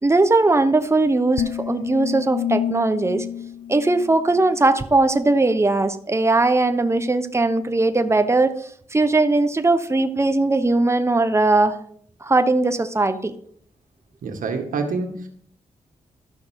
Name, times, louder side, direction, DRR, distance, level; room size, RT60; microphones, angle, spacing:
voice 1, 0.0-3.2 3.7-11.8 12.2-13.3, right 2 dB, 20° right, 9 dB, 1.2 m, -19 dB
sound 1, 1.4-4.7, left 10 dB, 85° left, 0.4 m, -29 dB
voice 2, 14.2-15.3, right 4 dB, 90° right, 5 dB, 1.9 m, -27 dB
13.0 x 5.7 x 8.2 m, 0.62 s
cardioid pair, 65°, 13 cm